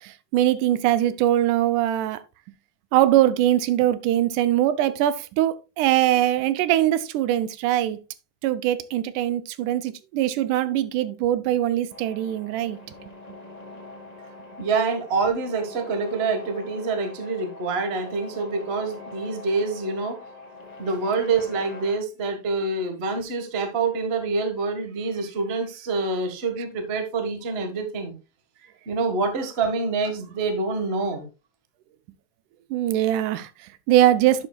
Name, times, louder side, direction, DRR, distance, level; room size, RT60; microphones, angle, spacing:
voice 1, 0.0-2.2 2.9-8.0 8.4-13.0 32.7-34.5, right 13 dB, 85° right, 2.2 m, -22 dB
sound 1, 11.9-21.9, left 3 dB, 55° left, 0.4 m, -43 dB
voice 2, 14.6-20.2 20.8-28.1 28.9-31.2, right 4 dB, 45° right, 0.8 m, -26 dB
11.0 x 7.5 x 2.3 m
omnidirectional pair, 3.6 m